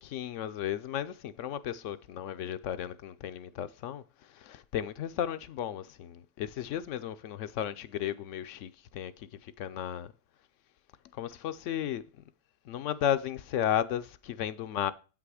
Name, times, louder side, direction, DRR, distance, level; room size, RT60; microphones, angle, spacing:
voice 1, 0.0-10.1 11.1-12.0 12.7-14.9, left 10 dB, 70° left, 0.7 m, -34 dB
8.4 x 5.9 x 4.8 m
omnidirectional pair, 1.7 m